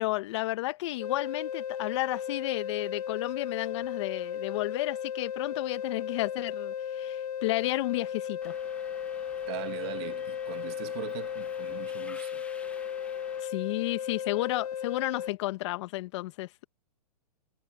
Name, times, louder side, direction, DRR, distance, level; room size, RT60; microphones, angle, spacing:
voice 1, 0.0-8.5 13.4-16.7, left 18 dB, 45° left, 1.9 m, -32 dB
sound 1, 1.0-15.3, left 9 dB, 75° left, 1.2 m, -35 dB
Subway metro underground, 8.4-13.4, left 3 dB, 5° left, 1.5 m, -52 dB
voice 2, 9.5-12.4, right 21 dB, 40° right, 1.9 m, -40 dB
hypercardioid pair, 145°, 20 cm